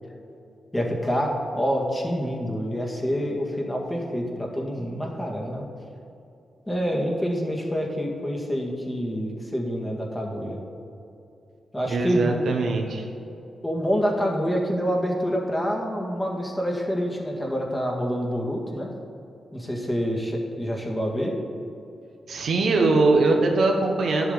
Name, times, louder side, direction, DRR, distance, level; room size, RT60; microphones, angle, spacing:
voice 1, 0.7-5.7 6.7-10.6 11.7-12.6 13.6-18.9 19.5-21.3, equal, 15° left, -1 dB, 1.9 m, -27 dB
voice 2, 11.9-13.1 22.3-24.3, right 3 dB, 75° right, 2 dB, 1.1 m, -21 dB
10.5 x 7.1 x 4.0 m, 2.7 s
cardioid pair, 60°, 0 cm